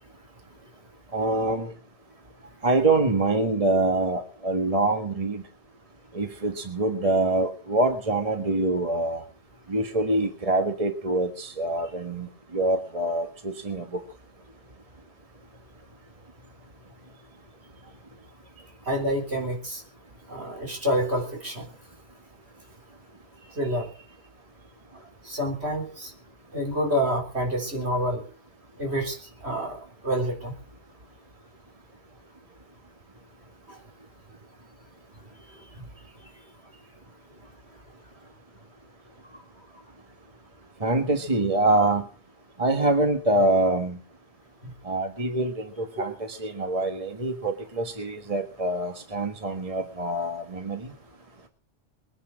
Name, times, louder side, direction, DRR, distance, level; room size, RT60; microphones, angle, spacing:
voice 1, 1.1-1.7 2.6-5.4 6.1-9.2 9.7-14.0 40.8-42.0 42.6-44.0 44.8-50.9, right 2 dB, 30° right, 5 dB, 1.6 m, -25 dB
voice 2, 18.9-19.8 20.3-21.7 23.6-23.9 25.2-26.1 26.5-28.2 28.8-29.2 29.4-29.8 30.0-30.5 33.7-33.8 44.6-44.7 46.0-46.1, equal, 60° right, 3 dB, 4.2 m, -27 dB
21.5 x 9.8 x 6.2 m, 0.41 s
omnidirectional pair, 1.2 m